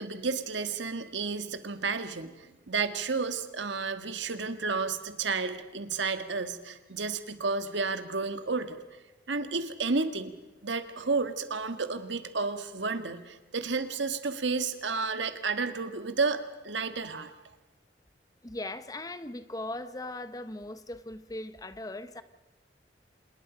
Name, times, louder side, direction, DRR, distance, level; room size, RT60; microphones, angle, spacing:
voice 1, 0.0-2.3 2.7-8.8 9.3-10.3 10.6-17.3, right 4 dB, 85° right, 1.6 m, -31 dB
voice 2, 18.4-22.2, left 2 dB, 20° left, 0.8 m, -39 dB
26.5 x 20.5 x 5.1 m
head